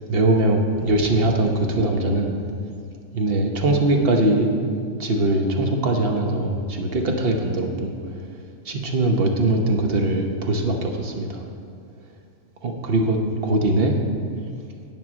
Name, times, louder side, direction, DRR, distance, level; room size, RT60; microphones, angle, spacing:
voice 1, 0.1-2.3 3.1-4.5 5.0-7.9 8.6-11.4 12.6-14.0, right 2 dB, 45° right, 2 dB, 1.1 m, -21 dB
sound 1, 0.8-3.5, equal, 65° right, 2.4 m, -43 dB
8.1 x 7.6 x 6.1 m, 2.3 s
omnidirectional pair, 1.5 m